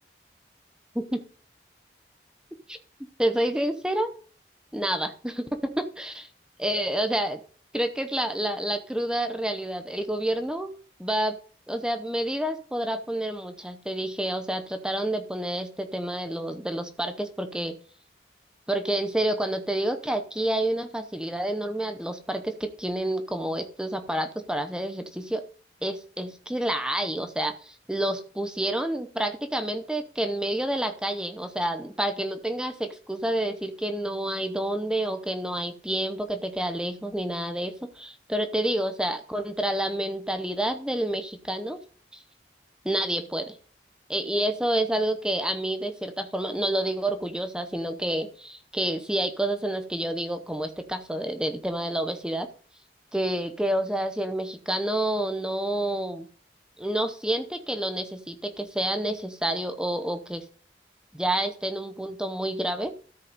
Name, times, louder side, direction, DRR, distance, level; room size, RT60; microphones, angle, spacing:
voice 1, 3.2-4.1 4.7-6.3 6.6-7.4 7.7-10.7 11.0-11.4 11.7-17.8 18.7-25.4 25.8-41.8 42.1-42.2 42.8-43.6 44.1-52.5 53.1-56.3 56.8-60.4 61.1-62.9, right 1 dB, 5° right, 8 dB, 0.7 m, -29 dB
13.0 x 5.2 x 5.2 m, 0.42 s
head